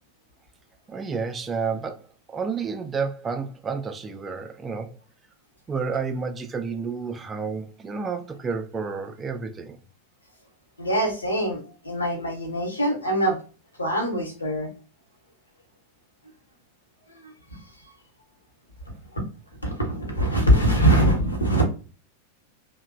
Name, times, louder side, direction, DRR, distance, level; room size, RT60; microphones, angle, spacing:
voice 1, 0.9-4.9 5.7-9.8, right 5 dB, 20° right, 0.3 m, -30 dB
voice 2, 10.8-13.4 13.8-14.7 17.2-17.6 19.1-19.2 19.6-21.6, right 1 dB, 80° left, 0.9 m, -23 dB
2.9 x 2.1 x 2.4 m
figure-of-eight pair, 90°, 0 cm